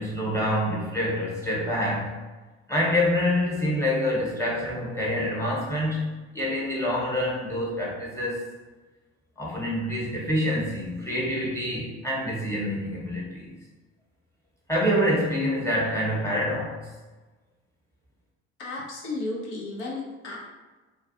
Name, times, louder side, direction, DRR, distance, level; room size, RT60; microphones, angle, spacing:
voice 1, 0.0-2.2 2.7-8.4 9.4-13.5 14.7-16.8, left 1 dB, 10° left, -4 dB, 1.0 m, -26 dB
voice 2, 18.6-20.4, left 2 dB, 75° left, -3 dB, 0.8 m, -33 dB
2.3 x 2.3 x 2.6 m, 1.2 s
hypercardioid pair, 60°, 35 cm